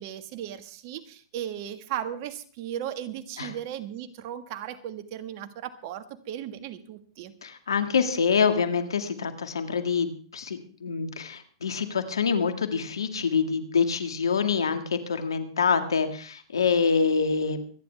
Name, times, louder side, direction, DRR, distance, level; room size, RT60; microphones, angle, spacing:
voice 1, 0.0-7.3, right 10 dB, 50° right, 9 dB, 1.6 m, -36 dB
voice 2, 7.4-17.6, left 5 dB, 85° left, 8 dB, 2.1 m, -26 dB
25.5 x 10.5 x 3.5 m, 0.41 s
hypercardioid pair, 120°, 2 cm